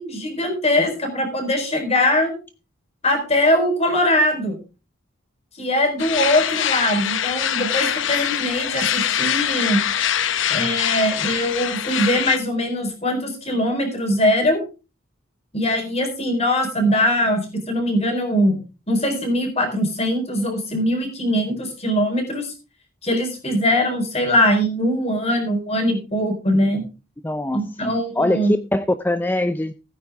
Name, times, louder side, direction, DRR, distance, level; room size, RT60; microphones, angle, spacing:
voice 1, 0.0-2.3 3.0-4.6 5.6-9.8 10.5-14.6 15.5-18.6 18.9-22.5 23.0-26.8 27.5-28.5, left 1 dB, 30° left, 4.1 m, -21 dB
sound 1, 6.0-12.4, left 9 dB, 70° left, 0.8 m, -23 dB
voice 2, 27.2-29.7, left 1 dB, 10° left, 0.5 m, -23 dB
16.0 x 9.2 x 3.6 m
head